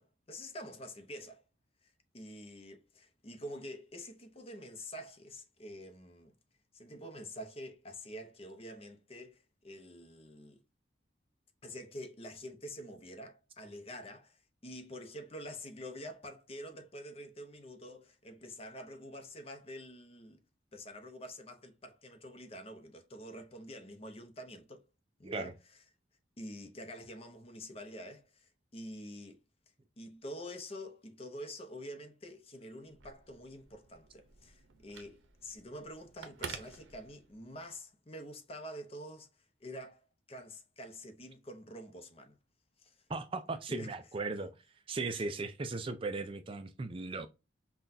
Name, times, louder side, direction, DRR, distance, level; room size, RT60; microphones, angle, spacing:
voice 1, 0.0-1.4 2.1-6.3 6.7-10.6 11.6-20.4 20.7-24.8 25.2-25.5 26.4-29.4 30.0-39.3 39.6-40.0 40.3-42.4 42.8-43.0 43.7-44.0 45.2-45.3, equal, 30° left, 0.7 m, -47 dB
Telephone, 32.9-37.6, right 6 dB, 85° right, 0.7 m, -49 dB
voice 2, 43.1-44.6 44.9-47.3, right 3 dB, 30° right, 0.4 m, -37 dB
5.7 x 2.3 x 2.6 m
head